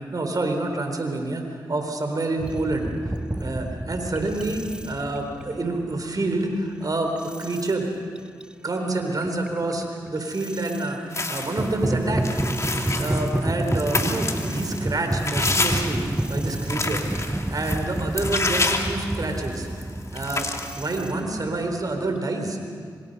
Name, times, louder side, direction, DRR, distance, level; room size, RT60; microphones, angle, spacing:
voice 1, 0.1-2.9 3.4-7.9 8.6-12.2 13.0-16.0 16.3-19.7 20.1-22.6, right 2 dB, 45° right, 4 dB, 4.3 m, -28 dB
sound 1, 2.4-6.7 7.2-7.7 8.2-8.5 9.0-10.9 11.4-22.2, right 1 dB, 10° right, 0.8 m, -30 dB
sound 2, 11.1-11.7 12.2-19.6 19.8-19.9 20.1-20.7, left 2 dB, 35° left, 2.7 m, -28 dB
25.5 x 25.0 x 5.6 m, 2.2 s
supercardioid pair, 45°, 8 cm